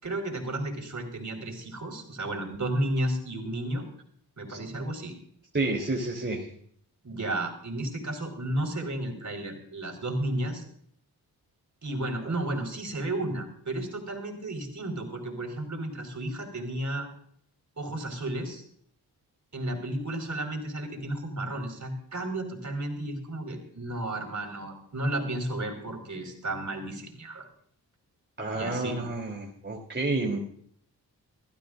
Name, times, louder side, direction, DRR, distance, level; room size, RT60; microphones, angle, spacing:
voice 1, 0.0-3.8 4.4-5.1 7.0-10.6 11.8-17.1 17.8-18.6 19.5-27.5 28.5-29.1, right 1 dB, 45° right, 3 dB, 5.2 m, -33 dB
voice 2, 5.5-6.5 28.4-30.4, right 2 dB, 25° right, -1 dB, 3.5 m, -30 dB
21.5 x 14.5 x 2.6 m, 0.62 s
cardioid pair, 55°, 40 cm